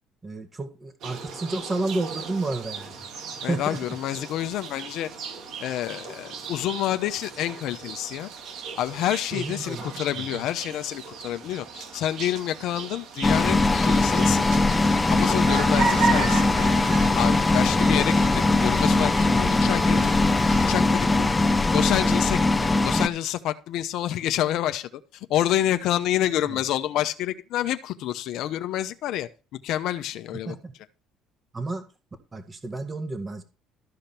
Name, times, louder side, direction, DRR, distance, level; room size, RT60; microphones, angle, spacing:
voice 1, 0.2-2.9 3.4-3.8 9.3-10.0 10.3-10.4 17.9-18.0 26.4-26.6 30.5-30.7 31.5-31.8 32.3-33.4, right 2 dB, 25° right, 7 dB, 1.8 m, -31 dB
sound 1, 1.0-20.7, right 5 dB, 65° right, 2.3 m, -35 dB
voice 2, 3.4-5.1 5.6-8.3 8.8-14.5 15.1-16.7 17.1-20.1 20.7-21.3 21.7-29.3 29.6-30.6, left 12 dB, 70° left, 9 dB, 0.8 m, -28 dB
sound 2, 13.2-23.1, left 2 dB, 15° left, 0.7 m, -21 dB
13.5 x 5.2 x 5.9 m, 0.34 s
supercardioid pair, 90°, 0 cm